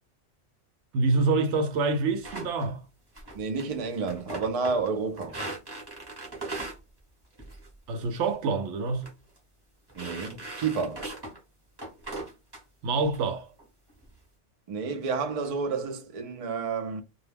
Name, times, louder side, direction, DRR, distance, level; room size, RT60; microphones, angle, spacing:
voice 1, 0.9-2.8 7.9-9.1 12.8-13.5, right 3 dB, 75° right, 0.9 m, -26 dB
sound 1, 2.2-2.7 3.1-3.7 4.0-4.9 5.2-6.8 7.4-7.7 8.0-8.3 8.9-9.1 9.4-9.5 9.9-11.4 11.8-12.6 13.0-13.2 13.6-14.1, right 2 dB, 20° right, 0.8 m, -39 dB
voice 2, 3.3-5.4 10.0-11.1 14.7-17.0, right 4 dB, 60° right, 0.3 m, -30 dB
2.3 x 2.1 x 3.2 m
omnidirectional pair, 1.2 m